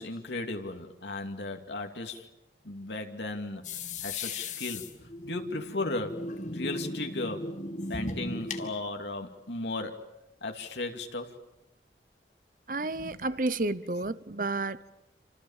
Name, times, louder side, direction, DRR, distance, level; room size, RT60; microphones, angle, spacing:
voice 1, 0.0-2.3 2.6-3.6 4.0-4.9 5.2-6.2 6.5-7.5 7.9-10.1 10.4-11.3 13.2-13.4, left 2 dB, 80° left, 2.6 m, -35 dB
sound 1, 3.6-8.7, left 2 dB, 45° left, 2.2 m, -37 dB
voice 2, 12.7-14.9, right 2 dB, 50° right, 0.9 m, -31 dB
28.5 x 27.0 x 7.4 m
head